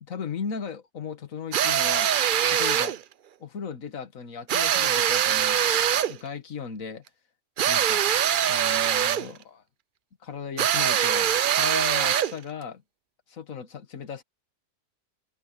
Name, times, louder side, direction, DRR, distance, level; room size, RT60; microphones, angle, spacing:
voice 1, 0.0-2.1 2.5-3.0 3.4-5.7 6.1-7.0 7.7-8.0 8.5-9.6 10.2-12.8 13.3-14.2, left 6 dB, 60° left, 1.9 m, -37 dB
sound 1, 1.5-3.0 4.5-6.2 7.6-9.3 10.6-12.4, right 9 dB, 75° right, 0.4 m, -23 dB
omnidirectional pair, 1.6 m